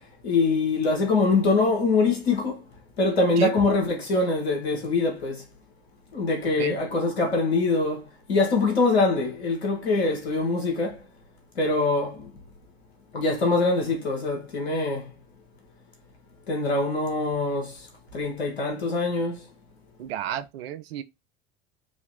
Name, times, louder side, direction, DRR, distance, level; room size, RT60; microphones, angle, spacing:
voice 1, 0.2-2.6 3.0-5.4 6.1-11.0 11.6-12.3 13.1-15.1 16.5-17.8 18.1-19.4, left 3 dB, 85° left, 1.6 m, -24 dB
voice 2, 20.0-21.0, right 11 dB, 75° right, 0.6 m, -31 dB
4.1 x 3.0 x 3.9 m
hypercardioid pair, 75°, 31 cm